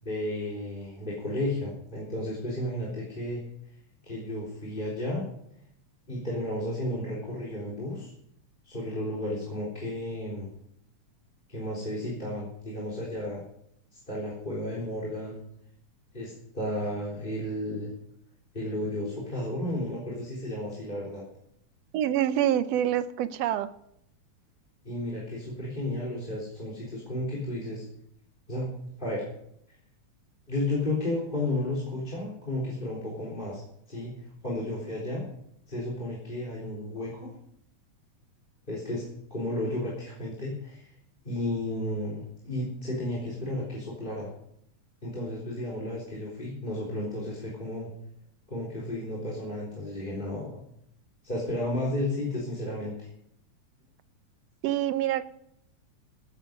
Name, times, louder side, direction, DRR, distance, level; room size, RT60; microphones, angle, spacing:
voice 1, 0.0-3.4 4.0-5.2 6.1-8.1 8.6-10.5 11.5-13.4 13.9-15.4 16.1-17.9 18.5-21.2 24.8-27.9 28.5-28.7 29.0-29.3 30.5-34.1 34.4-35.2 35.7-37.3 38.7-39.0 39.3-40.9 41.2-44.3 45.0-47.9 48.5-50.6 51.2-53.1, left 1 dB, 15° left, -3 dB, 3.9 m, -33 dB
voice 2, 21.9-23.7 54.6-55.3, right 11 dB, 70° right, 12 dB, 1.7 m, -26 dB
15.0 x 11.5 x 5.3 m, 0.72 s
omnidirectional pair, 3.5 m